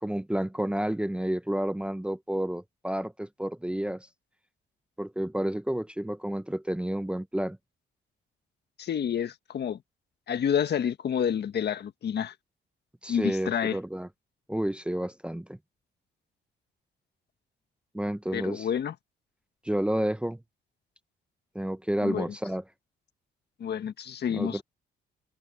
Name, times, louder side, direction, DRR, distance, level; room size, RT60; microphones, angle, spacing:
voice 1, 0.0-4.1 5.0-7.6 13.0-14.1 14.5-15.6 17.9-18.7 19.6-20.4 21.5-22.6 24.3-24.6, right 1 dB, 5° right, 0.8 m, -30 dB
voice 2, 8.8-9.8 10.3-12.3 13.1-13.8 18.3-18.9 22.0-22.2 23.6-24.6, left 8 dB, 55° left, 1.5 m, -29 dB
cardioid pair, 90°, 20 cm